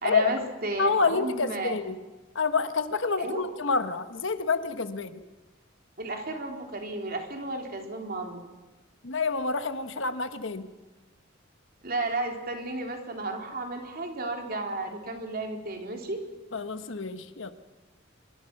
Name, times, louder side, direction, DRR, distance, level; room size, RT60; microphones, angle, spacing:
voice 1, 0.0-1.7 3.2-3.4 6.0-8.4 11.8-16.2, right 2 dB, 50° right, 2 dB, 3.6 m, -33 dB
voice 2, 0.8-2.0 2.3-5.2 9.0-10.7 16.5-17.5, left 4 dB, 65° left, 10 dB, 1.3 m, -28 dB
24.5 x 22.5 x 6.0 m, 1.2 s
head